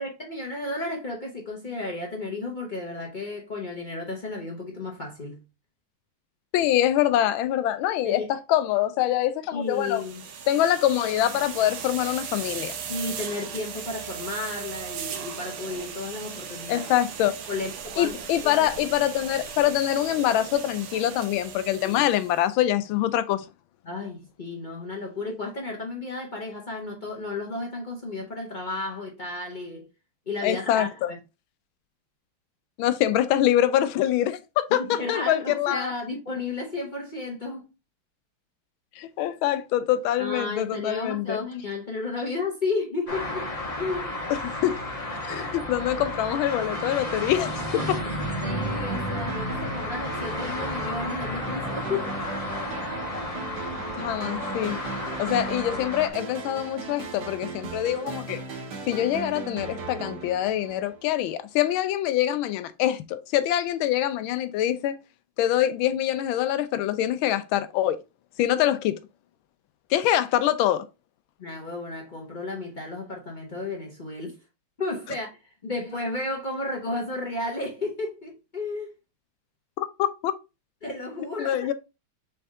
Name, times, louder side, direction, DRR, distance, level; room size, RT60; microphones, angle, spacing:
voice 1, 0.0-5.4 8.0-8.3 9.5-10.2 12.9-16.9 17.5-18.2 18.4-18.6 21.8-22.1 23.8-29.9 30.3-31.2 34.8-37.7 40.2-44.1 48.4-52.1 71.4-74.4 74.8-78.9 80.8-81.6, left 2 dB, 55° left, 0.5 m, -33 dB
voice 2, 6.5-10.0 10.5-12.8 16.7-17.4 18.0-23.4 30.4-31.1 32.8-35.9 39.0-41.4 44.3-44.8 45.3-48.0 54.0-54.8 55.2-58.4 58.9-65.0 65.4-68.0 68.4-69.0 69.9-70.8 79.8-80.3 81.4-81.7, left 12 dB, 80° left, 1.3 m, -24 dB
sound 1, 9.7-22.4, right 7 dB, 75° right, 1.6 m, -38 dB
sound 2, 43.1-56.1, left 1 dB, 20° left, 1.1 m, -32 dB
sound 3, 47.8-61.3, right 4 dB, 60° right, 1.4 m, -37 dB
4.3 x 3.5 x 3.5 m
omnidirectional pair, 2.3 m